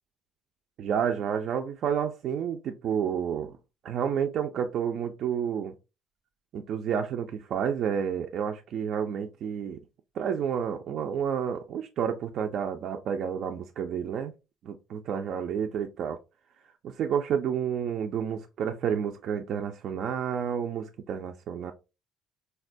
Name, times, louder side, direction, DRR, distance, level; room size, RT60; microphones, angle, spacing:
voice 1, 0.8-3.5 3.8-5.7 6.5-9.8 10.1-14.3 14.6-16.2 16.8-21.7, right 8 dB, 55° right, 0.3 m, -30 dB
4.1 x 2.2 x 2.5 m
cardioid pair, 135°, 0 cm